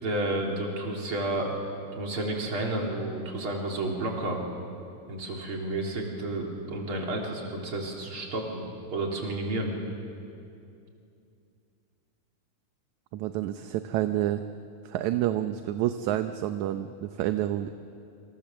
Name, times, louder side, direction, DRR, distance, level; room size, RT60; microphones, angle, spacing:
voice 1, 0.0-1.5 1.9-4.4 5.1-8.6 8.9-9.7, right 2 dB, 40° right, 0 dB, 4.2 m, -31 dB
voice 2, 13.1-14.4 14.8-17.7, right 12 dB, 75° right, 9 dB, 2.0 m, -28 dB
27.0 x 26.5 x 7.6 m, 2.5 s
omnidirectional pair, 3.7 m